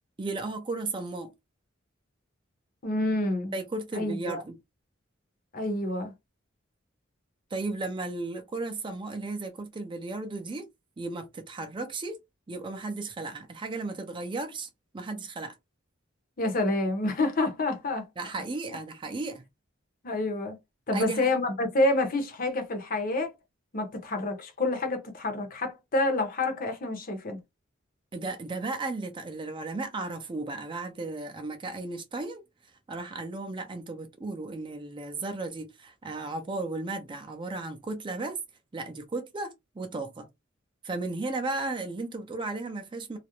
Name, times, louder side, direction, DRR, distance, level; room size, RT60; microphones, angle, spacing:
voice 1, 0.2-1.3 3.5-4.6 7.5-10.7 11.0-12.2 12.5-15.6 18.2-19.4 20.9-21.2 28.1-32.4 32.9-38.4 38.7-40.3 40.8-43.2, right 3 dB, 25° right, 0.4 m, -35 dB
voice 2, 2.8-3.5 3.9-4.4 5.5-6.1 16.4-18.0 20.0-20.6 20.9-23.3 23.7-27.4, left 2 dB, 45° left, 0.7 m, -28 dB
2.4 x 2.0 x 2.8 m
head